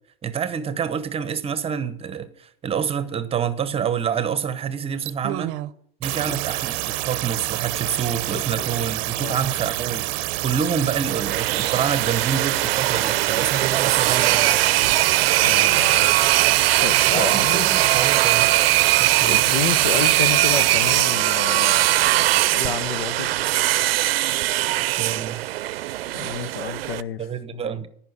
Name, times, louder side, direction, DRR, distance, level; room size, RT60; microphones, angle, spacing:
voice 1, 0.2-5.5 6.0-10.1 10.4-14.6 17.1-18.5 19.0-19.4 24.8-25.4 27.2-27.9, right 7 dB, 20° right, 0.9 m, -27 dB
sound 1, 5.0-5.7 6.0-21.0, right 19 dB, 45° right, 0.7 m, -28 dB
voice 2, 8.3-8.9 9.2-9.4 15.4-16.1 16.8-17.7 19.2-21.9 22.3-23.5 26.1-27.9, left 8 dB, 85° left, 0.9 m, -30 dB
sound 2, 11.1-27.0, right 15 dB, 85° right, 0.6 m, -20 dB
14.0 x 5.7 x 8.6 m
supercardioid pair, 125°, 29 cm